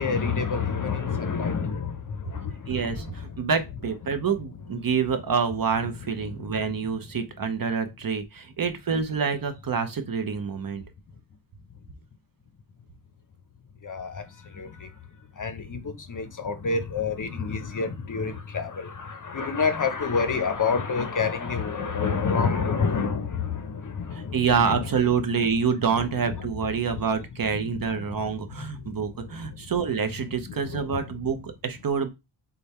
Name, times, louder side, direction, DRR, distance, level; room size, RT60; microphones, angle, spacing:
voice 1, 0.0-3.5 4.1-4.2 6.2-7.0 13.8-14.9 15.4-24.9 25.9-27.1 27.6-28.2 28.6-29.7 30.4-31.2, left 5 dB, 40° left, 0.7 m, -29 dB
voice 2, 2.7-10.8 24.1-32.1, right 6 dB, 45° right, 0.7 m, -27 dB
5.1 x 2.3 x 4.2 m
wide cardioid pair, 140°, 50 cm